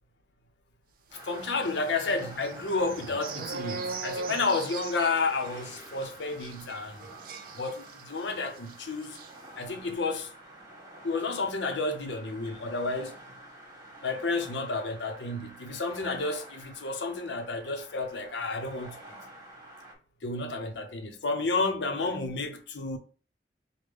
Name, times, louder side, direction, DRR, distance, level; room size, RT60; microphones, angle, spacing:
sound 1, 1.1-20.0, right 1 dB, 25° right, 1.4 m, -49 dB
voice 1, 1.2-7.1 7.6-9.2 9.5-10.3 11.0-13.1 14.0-19.2 20.2-23.0, left 3 dB, 90° left, 0.7 m, -31 dB
sound 2, 1.6-8.3 8.6-8.7 9.0-9.3, right 4 dB, 50° right, 0.4 m, -40 dB
5.1 x 2.1 x 3.4 m
head